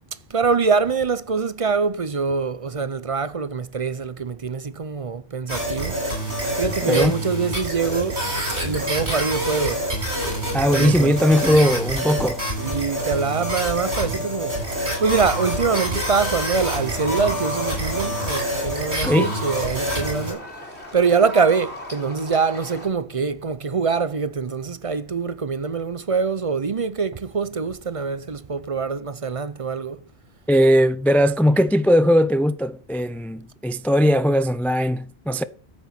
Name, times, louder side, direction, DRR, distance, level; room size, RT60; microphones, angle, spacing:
voice 1, 0.3-6.0 6.6-8.2 8.6-9.8 10.2-10.3 10.7-11.1 11.5-11.7 12.6-20.4 20.9-30.0, right 5 dB, 35° right, 0.7 m, -24 dB
sound 1, 5.5-20.3, right 1 dB, 80° right, 7.6 m, -27 dB
voice 2, 6.8-7.1 10.5-12.4 19.0-19.3 30.5-35.4, equal, ahead, 0.4 m, -19 dB
sound 2, 14.6-22.9, left 1 dB, 85° left, 3.6 m, -36 dB
14.0 x 8.7 x 6.0 m
omnidirectional pair, 1.1 m